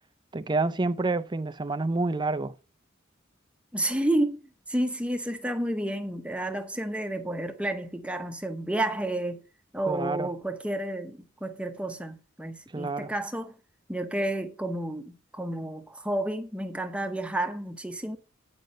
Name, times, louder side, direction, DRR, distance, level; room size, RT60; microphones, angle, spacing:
voice 1, 0.3-2.5 9.9-10.3 12.7-13.1, right 3 dB, 20° right, 0.5 m, -28 dB
voice 2, 3.7-9.4 9.7-13.6 13.9-18.2, right 1 dB, 5° right, 0.9 m, -31 dB
9.2 x 5.3 x 5.4 m
head